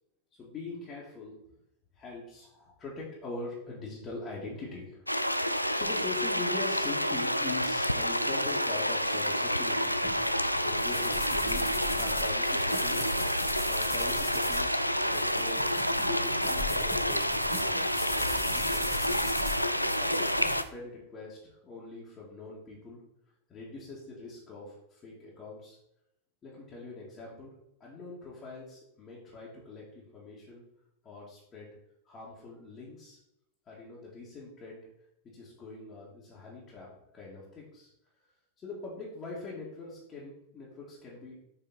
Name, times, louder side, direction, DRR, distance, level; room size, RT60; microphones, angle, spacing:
voice 1, 0.4-1.4 1.9-10.0 10.6-13.2 13.7-15.6 16.1-19.4 20.0-23.0 23.5-25.8 26.4-27.5 27.8-30.6 31.0-31.7 32.0-33.2 33.7-34.9 35.3-36.9 37.1-37.9 38.6-41.4, left 3 dB, 25° left, -7 dB, 2.2 m, -43 dB
sound 1, 5.1-20.6, equal, 90° left, 0.3 m, -29 dB
sound 2, 10.0-20.6, left 2 dB, 10° left, 1.6 m, -40 dB
7.0 x 5.0 x 4.2 m, 0.81 s
figure-of-eight pair, 90°, 0 cm